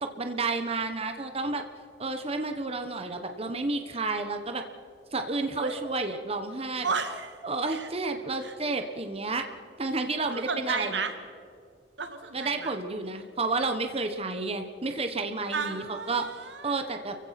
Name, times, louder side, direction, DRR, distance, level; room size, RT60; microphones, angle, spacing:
voice 1, 0.0-1.6 2.0-4.6 5.1-6.9 7.4-9.4 9.8-11.0 12.3-16.3 16.6-17.2, right 3 dB, 35° right, 6 dB, 1.2 m, -31 dB
voice 2, 6.8-7.4 7.7-7.9 8.4-8.5 10.3-11.1 12.0-12.8 15.5-16.8, right 4 dB, 85° right, 7 dB, 2.0 m, -33 dB
29.5 x 16.0 x 5.9 m, 2.3 s
head